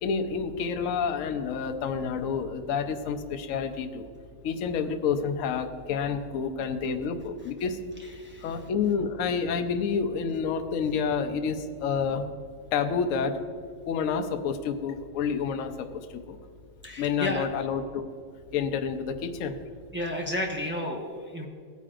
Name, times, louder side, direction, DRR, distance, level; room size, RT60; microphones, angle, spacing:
voice 1, 0.0-4.1 4.4-7.8 8.4-12.2 12.7-13.4 13.9-16.0 16.3-16.4 17.0-18.0 18.5-19.6, left 6 dB, 60° left, 6 dB, 0.9 m, -29 dB
voice 2, 16.8-17.4 19.9-21.5, left 1 dB, 10° right, -1 dB, 0.7 m, -32 dB
16.5 x 9.3 x 2.5 m, 2.1 s
omnidirectional pair, 1.9 m